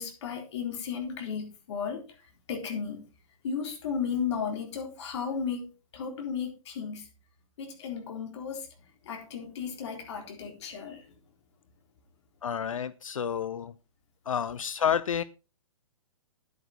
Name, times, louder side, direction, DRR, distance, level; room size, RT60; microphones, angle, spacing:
voice 1, 0.0-2.0 2.5-3.0 3.4-7.1 7.6-8.7 9.0-11.1, left 6 dB, 55° left, 3.8 m, -34 dB
voice 2, 12.4-13.7 14.3-15.2, left 8 dB, 70° left, 0.7 m, -29 dB
10.0 x 9.5 x 3.9 m
figure-of-eight pair, 120°, 18 cm